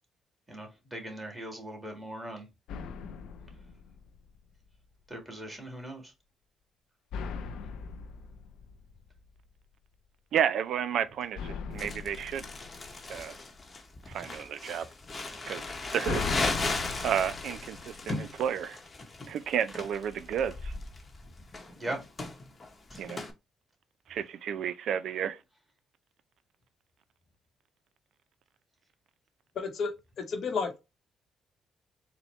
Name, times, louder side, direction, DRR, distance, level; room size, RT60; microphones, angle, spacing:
voice 1, 0.5-2.5 5.1-6.1 21.8-22.0 22.9-23.0, right 1 dB, 10° right, 1.6 m, -39 dB
sound 1, 2.7-4.6 7.1-9.5 11.4-13.6 15.6-18.6, left 6 dB, 85° left, 0.4 m, -40 dB
voice 2, 10.3-12.5 13.1-13.4 14.1-14.9 15.5-15.6 15.9-16.2 16.6-18.8 19.3-20.7 23.0-23.2 24.1-25.4, right 8 dB, 75° right, 0.3 m, -31 dB
Crumpling crinkling, 11.8-23.3, left 3 dB, 30° left, 0.8 m, -37 dB
voice 3, 29.6-29.9 30.2-30.8, left 5 dB, 60° left, 0.8 m, -31 dB
4.2 x 2.1 x 4.1 m
cardioid pair, 90°, 0 cm